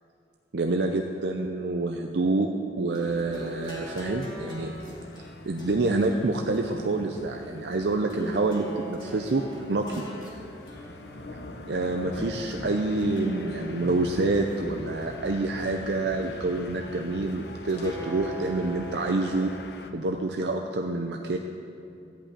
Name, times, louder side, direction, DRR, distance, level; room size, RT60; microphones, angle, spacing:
voice 1, 0.5-2.5 2.8-4.7 5.5-9.4 9.7-10.0 11.7-19.5 19.9-21.4, right 2 dB, 70° right, 3 dB, 0.6 m, -27 dB
sound 1, 2.9-12.4 13.0-14.6 15.0-16.1 17.7-19.6, equal, 25° left, 2.1 m, -43 dB
sound 2, 3.0-19.9, left 1 dB, 70° left, 0.8 m, -43 dB
13.0 x 5.5 x 8.6 m, 2.6 s
head